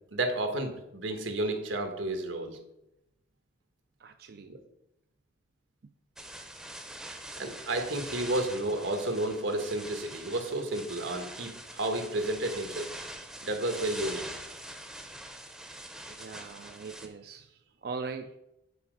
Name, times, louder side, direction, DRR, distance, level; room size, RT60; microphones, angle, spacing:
voice 1, 0.1-2.6 4.5-4.6 7.4-12.9 13.4-14.3, right 1 dB, 85° right, 5 dB, 1.4 m, -31 dB
voice 2, 4.0-4.6 16.1-18.4, right 4 dB, 55° right, 6 dB, 0.4 m, -41 dB
sound 1, 6.2-17.1, right 1 dB, 5° right, 0.7 m, -44 dB
8.5 x 4.9 x 5.1 m, 0.85 s
head